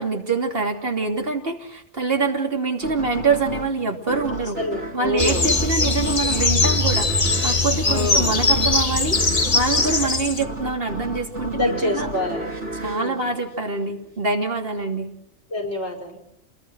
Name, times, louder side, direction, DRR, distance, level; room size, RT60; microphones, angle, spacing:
voice 1, 0.0-4.6 4.9-7.1 7.4-12.1 12.7-15.1, right 4 dB, 55° right, 3 dB, 3.2 m, -25 dB
sound 1, 2.8-14.1, right 1 dB, 75° right, 3.3 m, -33 dB
voice 2, 4.6-5.6 7.8-8.4 9.7-9.8 11.4-12.5 12.8-13.2 15.5-16.2, left 1 dB, 70° left, 0 dB, 5.5 m, -27 dB
sound 2, 5.2-10.4, left 3 dB, 35° left, 1.4 m, -21 dB
28.0 x 21.5 x 6.3 m, 0.75 s
omnidirectional pair, 1.2 m